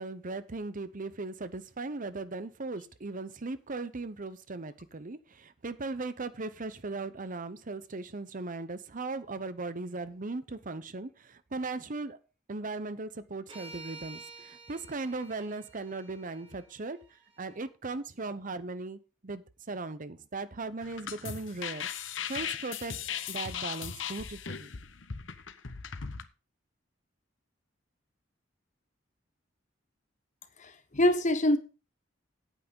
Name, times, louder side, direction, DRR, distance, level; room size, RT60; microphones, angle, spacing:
voice 1, 0.0-12.2 12.5-17.0 17.4-22.9 23.3-24.7, right 3 dB, 45° right, 0.9 m, -38 dB
sound 1, 13.5-17.7, right 3 dB, 30° right, 3.0 m, -51 dB
sound 2, 20.8-26.2, left 8 dB, 85° left, 1.0 m, -38 dB
voice 2, 30.6-31.6, left 1 dB, 40° left, 1.4 m, -25 dB
9.1 x 8.5 x 5.3 m
head